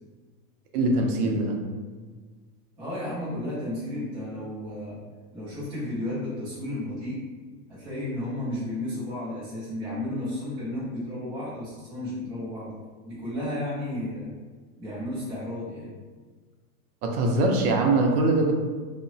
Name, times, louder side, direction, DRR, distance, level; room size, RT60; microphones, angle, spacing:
voice 1, 0.7-1.6 17.0-18.5, right 2 dB, 65° right, 2 dB, 0.6 m, -22 dB
voice 2, 2.8-5.0 5.3-7.2 7.7-12.7 13.0-14.3 14.8-15.9, left 1 dB, 15° right, -12 dB, 0.4 m, -33 dB
2.8 x 2.0 x 2.6 m, 1.5 s
supercardioid pair, 170°, 48 cm